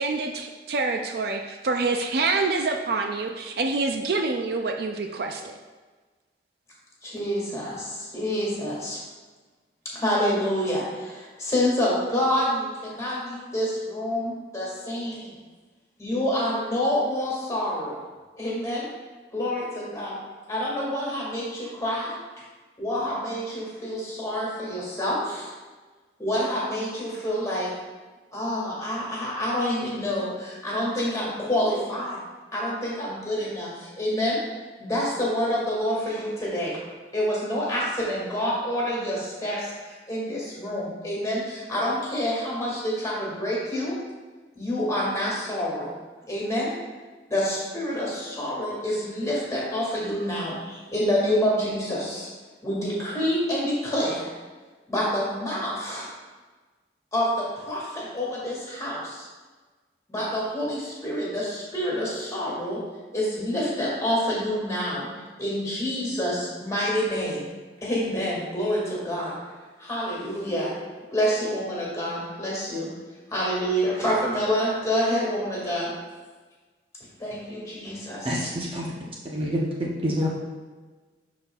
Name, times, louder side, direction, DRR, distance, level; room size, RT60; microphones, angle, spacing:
voice 1, 0.0-5.6, right 3 dB, 60° right, 4 dB, 0.4 m, -26 dB
voice 2, 7.0-9.0 9.8-15.3 16.0-18.0 18.4-18.9 19.3-20.2 20.5-22.4 22.8-25.5 26.2-27.7 28.3-32.2 32.5-34.4 34.8-36.8 37.1-44.0 44.6-45.9 46.3-46.7 47.3-52.3 52.6-54.3 54.9-56.1 57.1-59.3 60.1-62.8 63.1-65.1 65.4-67.5 67.8-69.4 69.8-70.7 71.1-72.9 73.3-75.9 77.2-78.5, equal, 20° left, -6 dB, 2.1 m, -27 dB
voice 3, 78.2-78.9 79.2-80.3, equal, 30° right, -4 dB, 0.8 m, -27 dB
12.0 x 4.2 x 2.4 m, 1.3 s
head